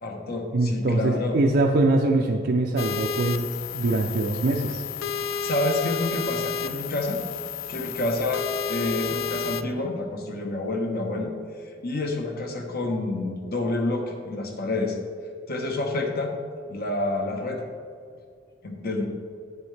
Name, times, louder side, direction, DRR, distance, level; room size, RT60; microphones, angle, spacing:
voice 1, 0.0-1.4 5.4-7.2 7.7-11.3 11.8-15.0 15.5-16.3 16.7-17.6 18.6-19.1, left 2 dB, 55° left, 3 dB, 0.9 m, -28 dB
voice 2, 0.5-3.5 3.7-4.8, right 2 dB, 55° right, 1 dB, 0.5 m, -23 dB
sound 1, 2.8-9.6, left 6 dB, 80° left, 0.4 m, -31 dB
8.8 x 7.0 x 3.3 m, 2.2 s
head